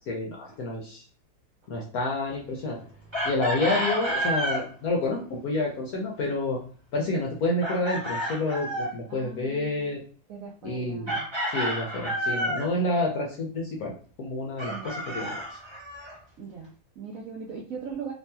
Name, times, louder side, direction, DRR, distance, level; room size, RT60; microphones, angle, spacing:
voice 1, 0.1-1.0 1.7-2.8 3.2-6.6 6.9-10.0 10.6-13.9 14.2-15.6, left 2 dB, 65° left, -1 dB, 1.0 m, -29 dB
Chicken rooster, 3.1-4.6 7.6-9.0 11.1-12.7 14.6-16.1, equal, 25° right, 0.5 m, -30 dB
voice 2, 9.1-10.0 10.3-11.1 14.7-15.0 16.4-18.1, right 5 dB, 75° right, -1 dB, 0.8 m, -40 dB
3.1 x 2.7 x 2.2 m, 0.43 s
omnidirectional pair, 2.0 m